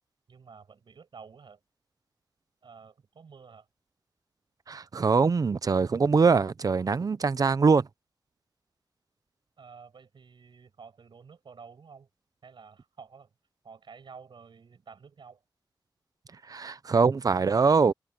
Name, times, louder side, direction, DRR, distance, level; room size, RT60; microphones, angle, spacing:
voice 1, 0.3-1.6 2.6-3.7 9.6-12.1 12.4-13.3 13.6-15.4, right 5 dB, 85° right, 7.3 m, -50 dB
voice 2, 4.7-7.9 16.5-17.9, right 5 dB, 50° right, 0.6 m, -23 dB
wide cardioid pair, 105°, 8 cm